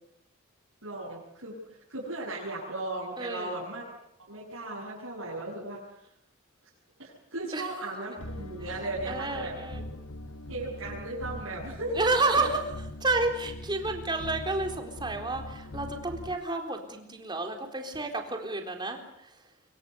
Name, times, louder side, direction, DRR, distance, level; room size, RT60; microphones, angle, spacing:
voice 1, 0.8-1.5 1.9-3.8 4.3-5.8 7.0-9.5 10.5-12.1 12.4-12.5, right 2 dB, 75° right, -6 dB, 7.7 m, -36 dB
voice 2, 3.2-3.6 7.5-7.7 9.1-9.8 11.9-12.6 13.0-19.4, right 2 dB, 20° right, 4 dB, 4.0 m, -30 dB
sound 1, 8.2-16.4, left 1 dB, 85° left, 1.7 m, -42 dB
25.0 x 24.0 x 8.2 m, 0.77 s
head